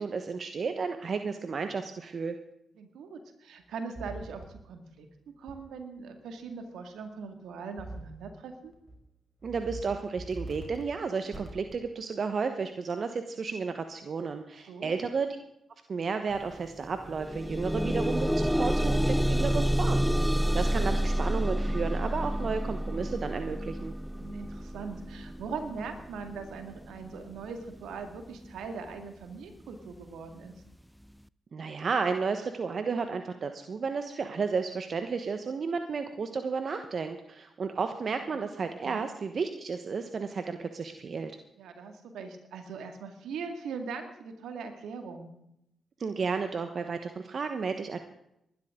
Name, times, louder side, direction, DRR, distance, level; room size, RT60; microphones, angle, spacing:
voice 1, 0.0-2.3 9.4-15.4 15.9-23.9 31.5-41.4 46.0-48.0, right 5 dB, 55° right, 7 dB, 1.2 m, -32 dB
voice 2, 2.8-8.7 14.7-15.0 20.4-21.0 24.1-30.5 38.3-38.5 38.8-39.1 41.6-45.3, right 5 dB, 80° right, 6 dB, 2.2 m, -41 dB
sound 1, 4.0-4.5 5.5-5.6 7.8-8.2 8.7-9.0 9.4-9.8 10.2-10.8 11.3-11.8, right 2 dB, 40° right, 5.2 m, -42 dB
sound 2, 16.3-16.5 16.8-27.9 28.6-28.7 29.2-29.3, equal, ahead, 0.5 m, -29 dB
20.0 x 12.0 x 3.8 m, 0.80 s
supercardioid pair, 45°, 0 cm